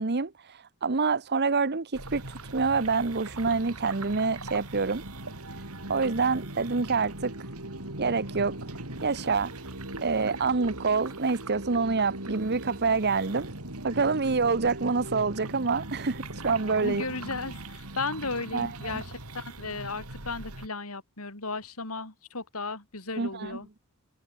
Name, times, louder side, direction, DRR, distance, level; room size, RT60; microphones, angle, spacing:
voice 1, 0.0-5.0 5.9-7.3 8.0-8.6 9.0-9.5 10.0-13.5 13.8-17.1 18.5-19.0 23.2-23.6, right 4 dB, 50° right, 1.0 m, -27 dB
sound 1, 1.9-20.7, right 2 dB, 85° right, 5.6 m, -40 dB
voice 2, 16.8-23.7, left 3 dB, 75° left, 4.5 m, -35 dB
head